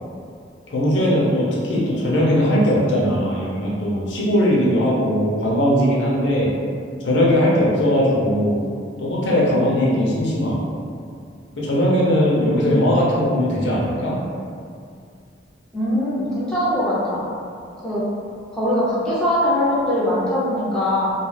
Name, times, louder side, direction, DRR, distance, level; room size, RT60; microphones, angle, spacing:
voice 1, 0.7-6.5 7.0-8.6 9.0-10.6 11.6-14.2, equal, 70° left, -5 dB, 0.6 m, -19 dB
voice 2, 15.7-17.2 17.8-18.0 18.5-21.1, left 1 dB, 5° left, -10 dB, 0.6 m, -21 dB
2.3 x 2.3 x 3.2 m, 2.3 s
head